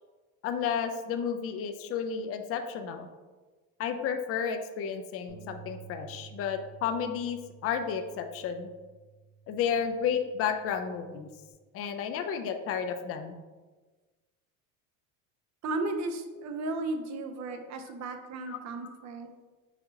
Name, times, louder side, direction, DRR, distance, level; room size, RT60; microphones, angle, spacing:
voice 1, 0.4-3.1 3.8-8.7 9.5-11.3 11.7-13.3 17.6-17.7 18.5-18.6, left 7 dB, 40° left, 7 dB, 0.4 m, -32 dB
Bass guitar, 5.3-11.5, right 7 dB, 80° right, 1.1 m, -52 dB
voice 2, 15.6-19.3, right 2 dB, 45° right, 6 dB, 0.6 m, -34 dB
5.8 x 2.8 x 2.8 m, 1.3 s
supercardioid pair, 110°, 38 cm